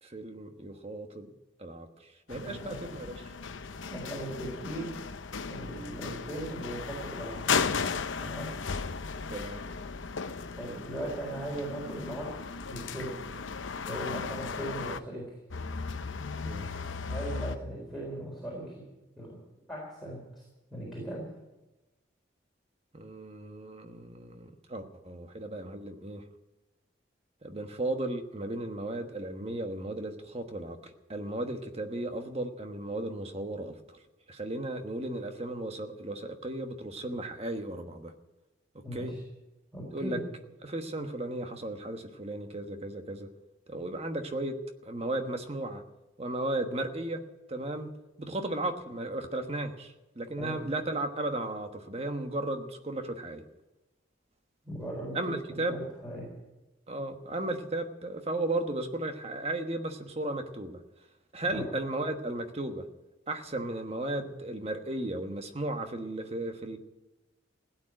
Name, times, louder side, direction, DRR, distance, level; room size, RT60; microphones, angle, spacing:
voice 1, 0.0-1.3 1.6-3.3 9.3-9.6 16.4-16.7 22.9-26.2 27.4-34.0 34.3-38.1 38.9-39.1 39.9-40.2 40.6-43.3 43.7-45.8 46.2-47.2 47.5-47.9 48.2-53.4 55.1-55.8 56.9-60.8 61.3-62.8 63.3-66.8, right 2 dB, 35° right, 6 dB, 1.3 m, -35 dB
sound 1, 2.3-15.0 15.5-17.6, left 5 dB, 85° left, 0.8 m, -36 dB
voice 2, 2.3-2.8 3.9-4.9 5.5-7.5 8.2-8.5 10.5-13.2 13.8-15.3 17.1-18.6 19.1-19.4 19.7-20.4 20.7-21.2 38.8-39.2 39.7-40.2 50.4-50.6 54.6-56.3 61.5-61.7, right 1 dB, ahead, -4 dB, 4.1 m, -38 dB
16.5 x 9.0 x 9.0 m, 1.0 s
head